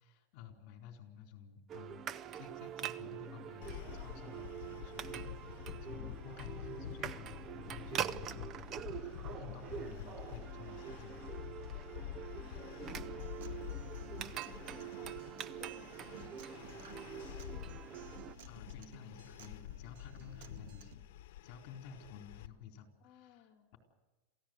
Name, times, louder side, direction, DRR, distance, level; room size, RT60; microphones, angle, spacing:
voice 1, 0.0-11.9 18.5-23.8, left 7 dB, 45° left, 4 dB, 4.2 m, -53 dB
sound 1, 1.7-18.4, right 9 dB, 25° right, 0.6 m, -44 dB
sound 2, 3.6-22.5, left 12 dB, 65° left, 1.3 m, -48 dB
voice 2, 11.9-17.4 23.0-23.7, left 9 dB, 25° left, -2 dB, 2.2 m, -59 dB
Acoustic guitar, 12.9-20.9, right 8 dB, 70° right, 2.0 m, -57 dB
27.5 x 16.0 x 8.1 m, 1.2 s
supercardioid pair, 165°, 0 cm